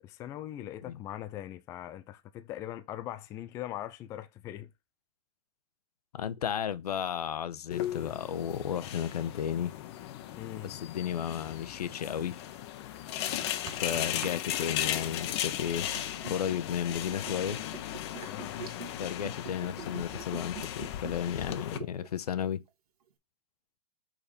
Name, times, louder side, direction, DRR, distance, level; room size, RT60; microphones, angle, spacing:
voice 1, 0.0-4.7 10.3-10.8 18.2-18.7, left 12 dB, 15° left, 0.3 m, -41 dB
voice 2, 6.1-9.7 10.6-12.4 13.7-15.9 16.3-17.6 18.9-22.6, left 9 dB, 75° left, 0.8 m, -33 dB
sound 1, 7.7-21.8, left 12 dB, 45° left, 0.8 m, -36 dB
sound 2, 13.4-14.5 17.5-17.6, right 11 dB, 35° right, 0.8 m, -46 dB
Liquid, 15.9-22.1 22.4-22.5, right 7 dB, 75° right, 1.5 m, -44 dB
5.0 x 4.2 x 5.1 m
hypercardioid pair, 140°, 20 cm